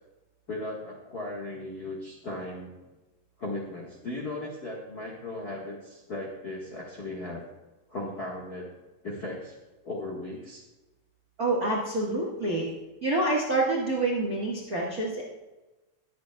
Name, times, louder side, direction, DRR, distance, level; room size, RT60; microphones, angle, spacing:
voice 1, 0.5-2.7 3.4-7.4 7.9-8.7 9.0-9.6 9.8-10.6, left 2 dB, 55° left, -4 dB, 1.1 m, -37 dB
voice 2, 11.4-12.7 13.0-15.2, right 2 dB, 50° right, -4 dB, 1.0 m, -27 dB
21.0 x 8.0 x 2.3 m, 1.1 s
omnidirectional pair, 4.0 m